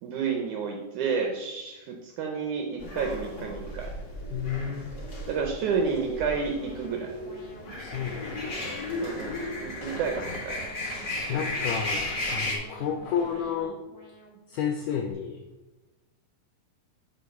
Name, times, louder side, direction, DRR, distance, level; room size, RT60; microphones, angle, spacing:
voice 1, 0.0-3.9 5.3-7.1 9.0-10.6, right 5 dB, 75° right, 2 dB, 1.9 m, -30 dB
sound 1, 2.8-12.6, left 2 dB, 35° left, 2.2 m, -35 dB
voice 2, 4.3-4.9 7.7-8.2 11.3-13.8 14.5-15.4, left 7 dB, 80° left, 3 dB, 1.8 m, -31 dB
Alarm, 5.8-15.1, right 3 dB, 5° right, 1.6 m, -50 dB
sound 2, 7.7-13.6, left 3 dB, 60° left, 2.3 m, -44 dB
8.1 x 5.1 x 5.8 m, 1.1 s
omnidirectional pair, 4.3 m